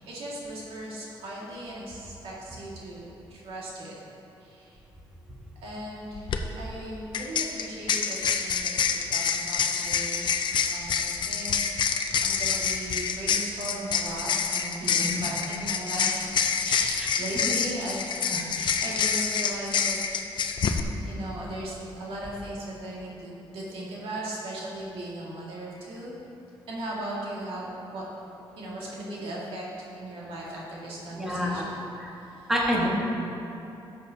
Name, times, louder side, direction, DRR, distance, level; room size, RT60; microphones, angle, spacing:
voice 1, 0.0-4.0 4.4-4.8 5.6-6.3 6.5-10.4 10.6-11.6 12.2-16.3 16.6-20.0 21.0-26.1 26.7-28.0 28.6-29.6 30.0-32.5, right 1 dB, 80° right, -6 dB, 2.2 m, -37 dB
sound 1, 6.1-6.4 7.1-20.8, left 6 dB, 55° left, 0.6 m, -27 dB
voice 2, 31.1-31.6 32.0-32.1 32.5-32.9, equal, 5° right, -5 dB, 1.6 m, -27 dB
12.5 x 7.4 x 2.9 m, 3.0 s
cardioid pair, 120°, 9 cm